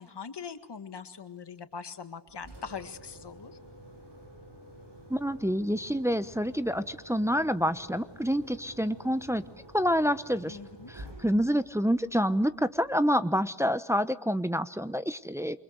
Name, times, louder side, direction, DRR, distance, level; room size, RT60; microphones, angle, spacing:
voice 1, 0.0-3.6 10.5-10.9, left 6 dB, 70° left, 9 dB, 1.9 m, -42 dB
Engine, 2.3-13.2, right 1 dB, 75° right, 7.6 m, -50 dB
voice 2, 5.1-9.4 9.7-10.6 10.9-15.6, equal, 5° right, 11 dB, 0.9 m, -27 dB
28.5 x 24.5 x 6.6 m, 0.97 s
wide cardioid pair, 85°, 42 cm